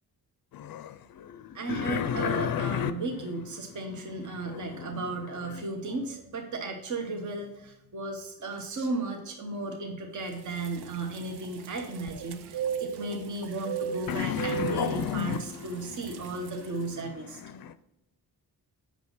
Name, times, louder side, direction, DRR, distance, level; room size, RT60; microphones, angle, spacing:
sound 1, 0.5-5.7 14.1-17.7, left 9 dB, 65° left, 0.5 m, -34 dB
voice 1, 1.5-17.4, right 3 dB, 50° right, 3 dB, 1.1 m, -35 dB
sound 2, 10.3-16.9, right 8 dB, 80° right, 0.7 m, -38 dB
7.6 x 6.1 x 4.0 m, 0.89 s
wide cardioid pair, 125°, 38 cm